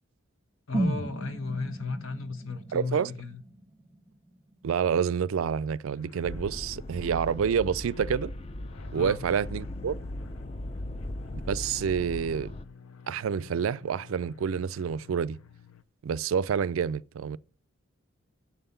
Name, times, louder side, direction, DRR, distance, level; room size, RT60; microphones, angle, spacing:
voice 1, 0.7-3.4 8.9-9.2, left 4 dB, 70° left, 1.1 m, -35 dB
sound 1, 0.7-4.7 5.0-5.1, right 1 dB, 5° right, 0.8 m, -34 dB
voice 2, 2.7-3.1 4.6-8.3 8.9-10.0 11.5-12.5 13.1-15.4 16.0-17.4, right 7 dB, 75° right, 0.4 m, -28 dB
sound 2, 6.0-15.8, left 5 dB, 90° left, 0.6 m, -51 dB
sound 3, 6.2-12.6, left 1 dB, 30° left, 0.4 m, -38 dB
7.5 x 5.6 x 6.8 m
head